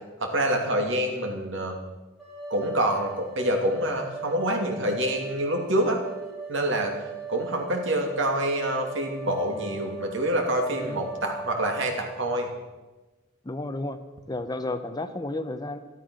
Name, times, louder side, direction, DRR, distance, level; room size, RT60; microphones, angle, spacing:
voice 1, 0.2-1.8 2.5-6.0 6.5-6.9 7.3-12.5, right 1 dB, 65° right, 2 dB, 2.7 m, -26 dB
sound 1, 2.2-12.0, right 4 dB, ahead, 6.1 m, -39 dB
voice 2, 13.4-14.0 14.3-15.8, left 2 dB, 20° left, 10 dB, 0.7 m, -32 dB
13.0 x 13.0 x 6.3 m, 1.2 s
head